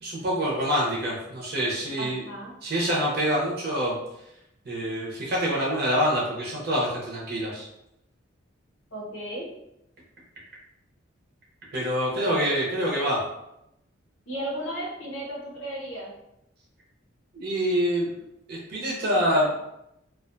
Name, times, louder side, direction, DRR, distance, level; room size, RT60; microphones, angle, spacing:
voice 1, 0.0-2.2 2.6-4.0 4.6-7.7 11.7-13.2 17.3-18.1 18.5-19.5, equal, 50° right, -4 dB, 0.6 m, -26 dB
voice 2, 2.0-2.5 8.9-9.5 14.3-16.1, right 1 dB, 80° left, -5 dB, 0.8 m, -34 dB
2.4 x 2.2 x 2.5 m, 0.83 s
head